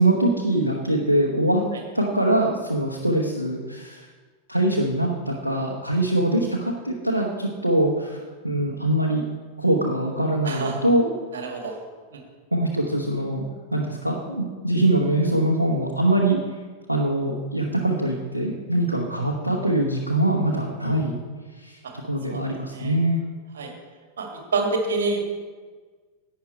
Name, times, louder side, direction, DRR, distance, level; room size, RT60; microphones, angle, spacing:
voice 1, 0.0-1.6 1.9-4.1 4.5-8.2 8.4-9.2 9.6-11.1 12.5-13.5 13.7-16.4 16.9-21.1 21.6-23.2, right 1 dB, 85° right, -1 dB, 1.1 m, -23 dB
voice 2, 10.4-10.8 11.3-11.7 12.1-12.2 21.8-21.9 22.3-22.4 22.7-23.0 23.5-23.7 24.2-25.2, right 3 dB, 65° right, 3 dB, 1.9 m, -27 dB
11.5 x 8.8 x 4.4 m, 1.4 s
figure-of-eight pair, 90°, 0 cm